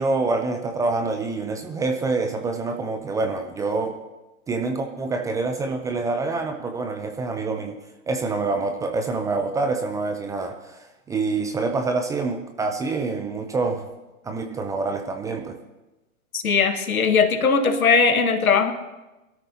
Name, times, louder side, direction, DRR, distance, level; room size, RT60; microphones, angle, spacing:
voice 1, 0.0-4.0 4.5-7.8 8.1-13.9 14.2-15.6, right 3 dB, 10° right, 6 dB, 0.5 m, -26 dB
voice 2, 16.3-18.7, left 5 dB, 80° left, 7 dB, 1.6 m, -19 dB
22.5 x 13.0 x 2.8 m, 1.1 s
hypercardioid pair, 120°, 42 cm